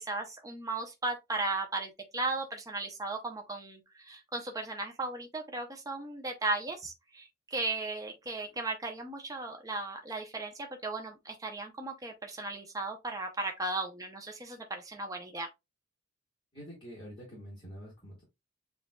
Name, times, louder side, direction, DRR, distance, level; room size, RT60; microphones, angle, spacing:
voice 1, 0.0-15.5, right 2 dB, 15° right, 0.7 m, -36 dB
voice 2, 16.5-18.2, equal, 25° left, 1.8 m, -46 dB
7.4 x 2.6 x 2.3 m
head